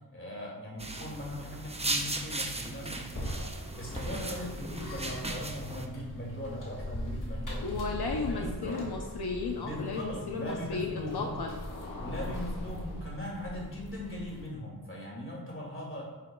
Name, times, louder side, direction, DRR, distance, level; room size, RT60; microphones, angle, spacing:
voice 1, 0.1-8.8 9.6-11.3 12.0-16.0, left 1 dB, 35° left, -3 dB, 2.4 m, -40 dB
sound 1, 0.8-5.9, right 2 dB, 15° right, 0.6 m, -37 dB
sound 2, 3.1-14.5, left 1 dB, 55° left, 1.7 m, -40 dB
voice 2, 7.6-11.6, left 4 dB, 80° left, 1 dB, 0.8 m, -34 dB
9.3 x 6.2 x 2.3 m, 1.3 s
wide cardioid pair, 85°, 38 cm